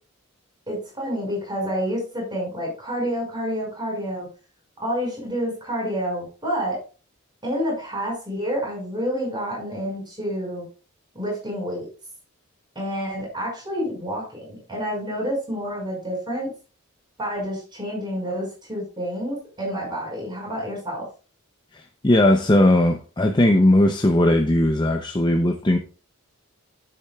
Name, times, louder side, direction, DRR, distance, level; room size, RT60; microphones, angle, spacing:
voice 1, 0.7-4.3 4.8-6.8 7.4-10.7 11.1-11.9 12.8-16.5 17.2-21.1, equal, 20° right, 5.3 m, -28 dB
voice 2, 21.7-25.8, left 1 dB, 20° left, 0.6 m, -18 dB
9.9 x 8.6 x 2.3 m
head